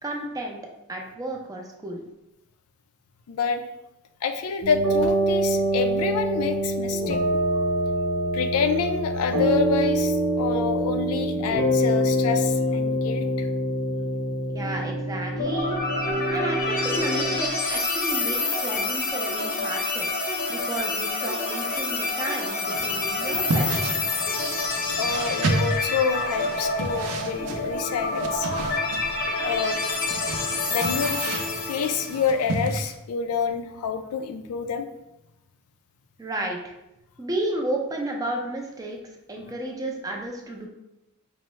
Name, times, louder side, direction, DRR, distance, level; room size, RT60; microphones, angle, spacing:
voice 1, 0.0-0.6 0.9-2.0 14.5-15.8 16.3-20.1 20.5-23.9 36.2-36.7 37.2-39.0 39.3-40.7, right 1 dB, 15° right, 1 dB, 0.4 m, -32 dB
voice 2, 3.3-3.6 4.2-7.2 7.5-7.6 8.3-13.5 25.0-28.5 29.4-29.8 30.3-31.2 31.7-34.9, left 6 dB, 85° left, 8 dB, 0.4 m, -27 dB
sound 1, 4.6-17.4, right 1 dB, 65° right, 0.9 m, -25 dB
sound 2, 15.4-32.3, left 3 dB, 40° left, 0.6 m, -28 dB
sound 3, 22.7-32.9, right 2 dB, 90° right, 0.5 m, -32 dB
5.3 x 2.0 x 3.1 m, 0.91 s
head